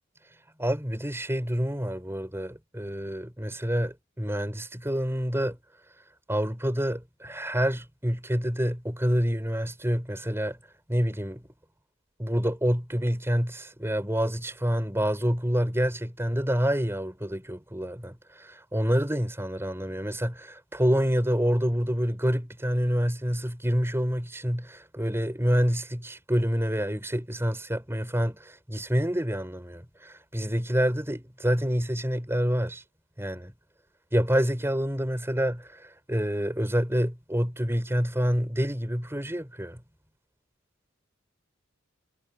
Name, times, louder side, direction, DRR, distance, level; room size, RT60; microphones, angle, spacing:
voice 1, 0.6-5.6 6.3-10.6 10.9-11.5 12.2-32.8 33.2-33.5 34.1-39.8, equal, 10° right, 5.4 m, -27 dB
head